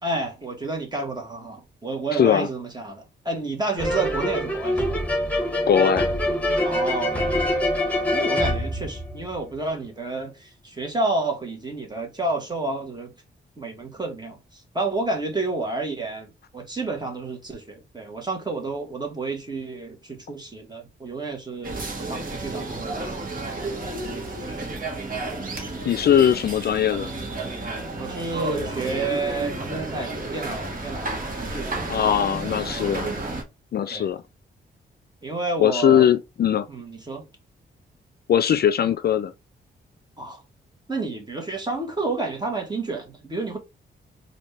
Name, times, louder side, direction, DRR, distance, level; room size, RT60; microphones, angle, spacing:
voice 1, 0.0-4.9 6.6-13.1 13.6-24.7 28.0-31.8 33.9-34.1 35.2-36.1 36.7-37.3 40.2-40.4 40.9-43.6, right 3 dB, 20° right, 1.6 m, -30 dB
voice 2, 2.1-2.5 5.7-6.1 25.8-27.1 31.9-33.1 33.7-34.2 35.6-36.7 38.3-39.3, left 9 dB, 55° left, 0.4 m, -20 dB
sound 1, 3.8-9.6, left 1 dB, 5° left, 1.5 m, -24 dB
sound 2, 21.6-33.4, right 2 dB, 50° right, 1.5 m, -32 dB
4.1 x 2.7 x 3.3 m
cardioid pair, 85°, 19 cm